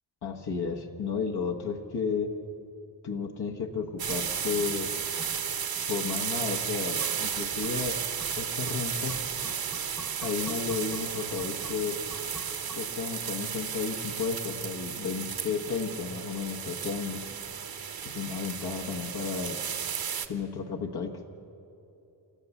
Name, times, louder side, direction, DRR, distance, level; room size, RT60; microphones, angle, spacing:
voice 1, 0.2-2.3 3.0-4.9 5.9-8.0 8.4-9.2 10.2-12.0 12.7-17.2 18.0-19.6 20.3-21.3, left 5 dB, 60° left, 1 dB, 1.4 m, -33 dB
sound 1, 3.8-13.3 13.6-13.7, left 1 dB, 5° left, 0.9 m, -49 dB
sound 2, 4.0-20.3, right 7 dB, 50° right, 1.0 m, -34 dB
28.5 x 14.0 x 7.2 m, 2.9 s
wide cardioid pair, 170°, 45 cm